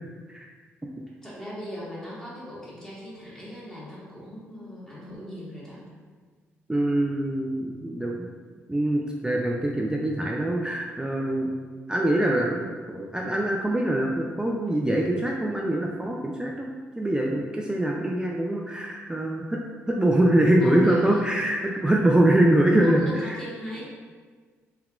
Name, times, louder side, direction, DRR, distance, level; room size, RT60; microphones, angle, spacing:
voice 1, 1.2-5.8 20.6-21.3 22.8-23.8, equal, 10° left, -8 dB, 1.2 m, -39 dB
voice 2, 6.7-8.3 8.7-11.5 11.9-16.7 17.0-23.4, right 1 dB, 10° right, -1 dB, 0.3 m, -24 dB
3.4 x 2.2 x 2.3 m, 1.5 s
hypercardioid pair, 45°, 6 cm